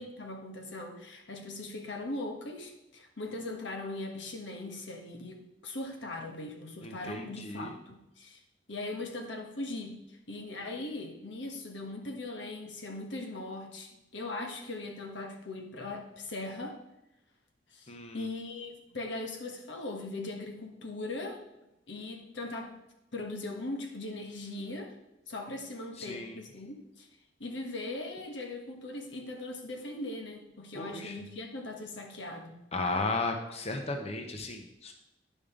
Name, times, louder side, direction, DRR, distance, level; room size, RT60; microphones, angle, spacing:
voice 1, 0.0-8.4 8.7-16.8 17.7-21.4 21.9-22.8 23.1-24.9 25.3-27.1 27.4-32.6, left 2 dB, 90° left, 3 dB, 1.5 m, -40 dB
voice 2, 6.8-7.7 17.9-18.3 26.0-26.4 30.7-31.1 32.7-34.9, left 3 dB, 35° left, 4 dB, 0.9 m, -35 dB
10.0 x 5.3 x 5.1 m, 0.89 s
head